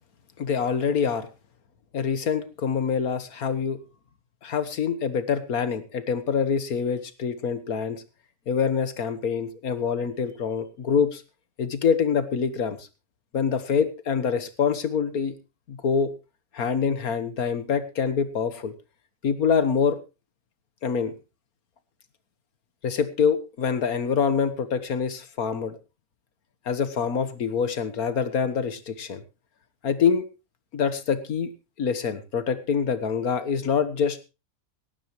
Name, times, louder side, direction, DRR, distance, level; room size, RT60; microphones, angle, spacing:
voice 1, 0.4-1.3 1.9-3.8 4.4-8.0 8.5-11.2 11.6-12.9 13.3-15.3 15.7-16.1 16.5-18.7 19.2-20.0 20.8-21.1 22.8-25.8 26.6-29.2 29.8-30.2 30.7-31.5 31.8-34.2, left 6 dB, 60° left, 13 dB, 1.8 m, -25 dB
18.0 x 14.5 x 3.1 m, 0.29 s
omnidirectional pair, 1.8 m